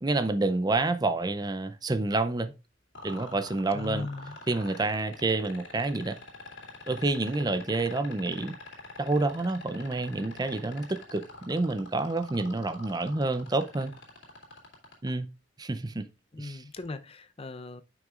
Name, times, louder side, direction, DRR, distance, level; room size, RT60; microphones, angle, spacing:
voice 1, 0.0-2.5 3.0-4.1 4.5-6.2 6.9-8.6 9.0-13.9 15.0-15.3 15.6-16.1 16.4-16.6, right 2 dB, 20° right, 0.5 m, -28 dB
sound 1, 2.9-15.1 16.8-16.9, left 3 dB, 65° left, 2.5 m, -44 dB
voice 2, 3.7-4.3 16.3-17.8, left 3 dB, 30° left, 0.6 m, -38 dB
9.4 x 6.0 x 2.4 m
head